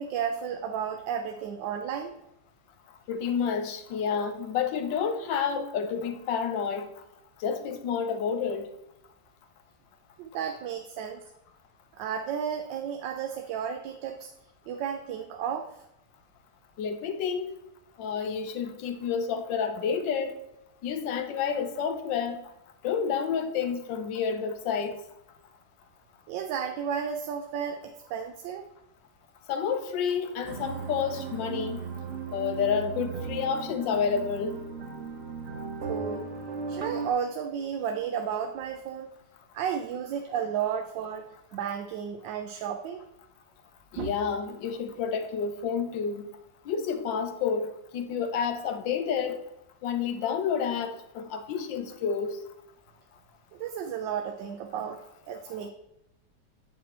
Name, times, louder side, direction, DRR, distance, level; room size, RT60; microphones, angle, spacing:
voice 1, 0.0-2.1 10.2-11.2 12.0-14.3 14.7-15.7 26.3-28.6 35.9-36.3 36.7-39.1 39.5-43.0 44.0-44.1 53.5-55.7, right 8 dB, 85° right, 5 dB, 1.3 m, -33 dB
voice 2, 3.1-6.8 7.4-8.7 16.8-17.5 18.0-20.3 20.8-22.4 22.8-25.0 29.5-31.8 32.3-34.6 43.9-46.3 46.7-49.4 49.8-52.4, left 6 dB, 85° left, 8 dB, 1.5 m, -29 dB
sound 1, 30.4-37.1, right 5 dB, 50° right, 0.8 m, -37 dB
8.2 x 6.1 x 3.0 m, 0.86 s
omnidirectional pair, 1.9 m